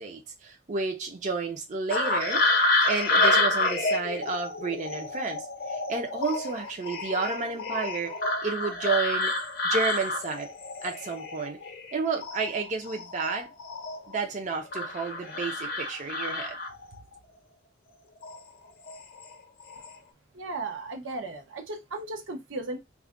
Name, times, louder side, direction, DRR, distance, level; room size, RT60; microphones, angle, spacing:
voice 1, 0.0-2.4 2.9-8.1 8.4-9.4 9.6-10.5 10.8-11.6 11.9-13.5 14.1-16.6, right 4 dB, 40° right, 0.5 m, -31 dB
sound 1, 1.9-11.9 12.2-14.2 14.7-17.0 18.2-18.4 18.9-19.3 19.6-19.9, left 2 dB, 50° left, 0.6 m, -28 dB
voice 2, 20.3-22.8, right 2 dB, 80° right, 0.8 m, -35 dB
2.4 x 2.1 x 3.5 m
head